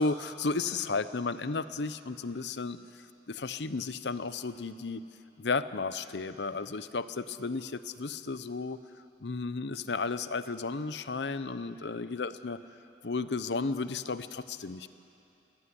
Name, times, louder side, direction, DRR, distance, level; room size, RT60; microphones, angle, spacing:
voice 1, 0.0-2.8 3.3-5.1 5.4-8.8 9.2-12.6 13.0-14.9, left 4 dB, 75° left, 13 dB, 0.7 m, -33 dB
22.5 x 17.5 x 9.8 m, 2.9 s
head